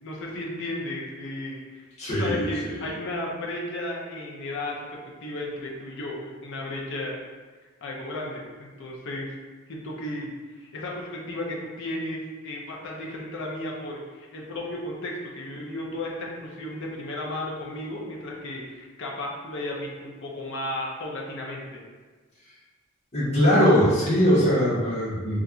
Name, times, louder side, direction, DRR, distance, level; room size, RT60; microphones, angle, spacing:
voice 1, 0.0-7.2 7.8-9.3 9.7-10.3 10.6-21.8, left 1 dB, 60° left, -2 dB, 0.6 m, -34 dB
voice 2, 2.0-2.8 23.1-25.4, equal, 30° left, -9 dB, 1.3 m, -21 dB
4.1 x 2.4 x 2.4 m, 1.4 s
head